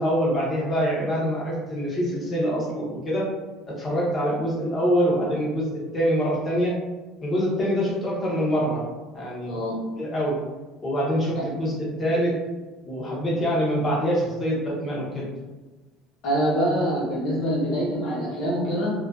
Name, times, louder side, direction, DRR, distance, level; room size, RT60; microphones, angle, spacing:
voice 1, 0.0-3.3 3.8-5.7 5.9-6.7 7.2-8.8 9.1-9.5 10.0-10.4 10.8-12.3 12.9-15.3, equal, 20° left, -5 dB, 0.6 m, -25 dB
voice 2, 16.2-18.9, equal, 45° left, -5 dB, 0.9 m, -25 dB
2.3 x 2.2 x 2.4 m, 1.2 s
cardioid pair, 170°, 0 cm